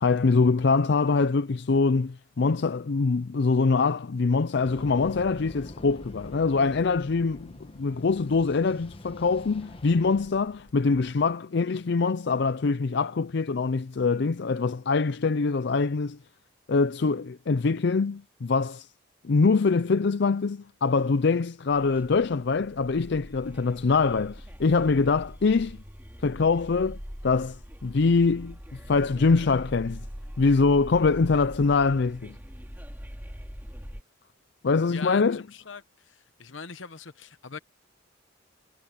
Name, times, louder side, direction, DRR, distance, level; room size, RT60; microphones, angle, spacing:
voice 1, 0.0-16.2 16.7-18.9 19.2-25.8 26.2-30.1 30.4-32.4 34.6-35.4, left 4 dB, 60° left, 0.5 m, -24 dB
sound 1, 4.6-11.4, left 1 dB, 30° left, 1.2 m, -46 dB
sound 2, 21.7-34.0, equal, 10° right, 5.0 m, -43 dB
voice 2, 34.9-37.6, left 5 dB, 75° left, 1.1 m, -42 dB
head